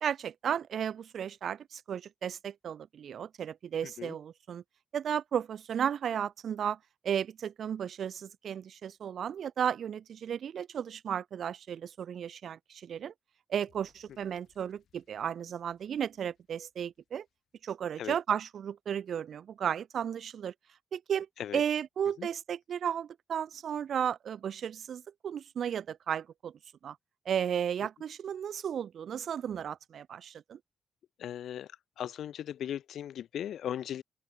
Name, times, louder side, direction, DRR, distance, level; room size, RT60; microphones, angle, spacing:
voice 1, 0.0-4.6 4.9-6.8 7.0-13.1 13.5-17.3 17.6-20.5 20.9-21.3 21.5-26.5 26.8-27.0 27.3-30.6, right 8 dB, 60° right, 0.4 m, -34 dB
voice 2, 3.8-4.2 18.0-18.2 21.4-21.6 22.2-22.3 31.2-31.7 32.0-34.0, left 10 dB, 85° left, 0.9 m, -37 dB
sound 1, 13.6-17.9, left 9 dB, 70° left, 7.2 m, -72 dB
open air
wide cardioid pair, 170°, 0 cm